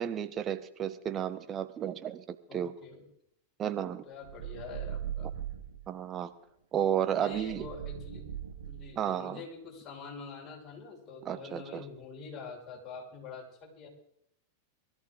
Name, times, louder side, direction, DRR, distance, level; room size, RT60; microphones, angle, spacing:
voice 1, 0.0-2.7 3.6-4.0 5.9-6.3 6.7-7.7 9.0-9.4 11.2-11.8, right 9 dB, 30° right, 11 dB, 1.0 m, -32 dB
voice 2, 2.5-3.1 3.8-5.4 7.1-8.2 8.7-13.9, left 4 dB, 25° left, -1 dB, 5.5 m, -45 dB
sound 1, 4.2-5.8 7.3-9.1, right 10 dB, 70° right, 3.0 m, -39 dB
22.5 x 13.5 x 3.8 m, 0.73 s
figure-of-eight pair, 90°, 0 cm